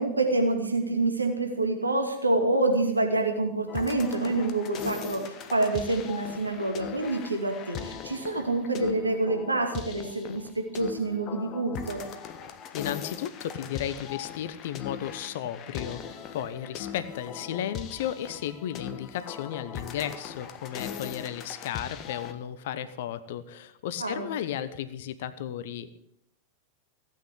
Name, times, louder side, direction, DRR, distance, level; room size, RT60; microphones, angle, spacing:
voice 1, 0.0-12.0 24.0-24.3, right 2 dB, 80° right, 4 dB, 2.4 m, -27 dB
sound 1, 3.7-22.3, left 8 dB, 35° left, 1.4 m, -40 dB
voice 2, 12.7-26.0, left 10 dB, 55° left, 13 dB, 0.9 m, -34 dB
16.5 x 8.8 x 8.4 m, 0.75 s
figure-of-eight pair, 90°, 0 cm